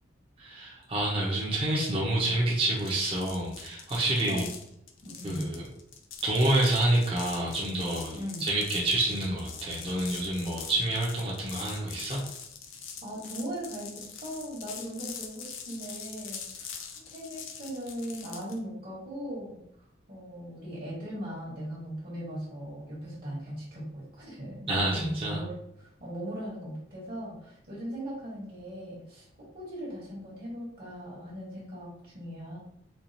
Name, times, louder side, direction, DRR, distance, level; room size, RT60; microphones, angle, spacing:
voice 1, 0.4-4.4 5.2-5.6 6.2-12.2 24.7-25.4, right 1 dB, 30° right, -4 dB, 0.7 m, -28 dB
sound 1, 2.8-18.6, left 7 dB, 85° left, 0.5 m, -43 dB
voice 2, 5.0-5.5 8.1-8.4 13.0-16.8 17.1-19.6 20.1-32.6, equal, 50° right, -6 dB, 1.2 m, -39 dB
4.4 x 2.4 x 2.7 m, 0.77 s
head